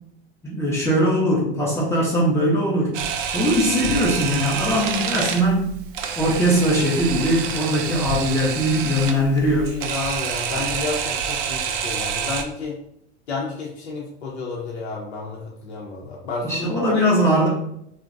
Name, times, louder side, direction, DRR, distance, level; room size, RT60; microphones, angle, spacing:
voice 1, 0.4-2.9 3.3-5.7 6.2-9.8 16.4-17.5, equal, 10° left, -6 dB, 0.5 m, -20 dB
Camera, 2.9-12.4, right 7 dB, 50° right, 0.4 m, -27 dB
voice 2, 9.4-12.8 13.3-17.0, left 4 dB, 80° left, -3 dB, 0.6 m, -31 dB
2.5 x 2.1 x 2.4 m, 0.73 s
hypercardioid pair, 100°, 33 cm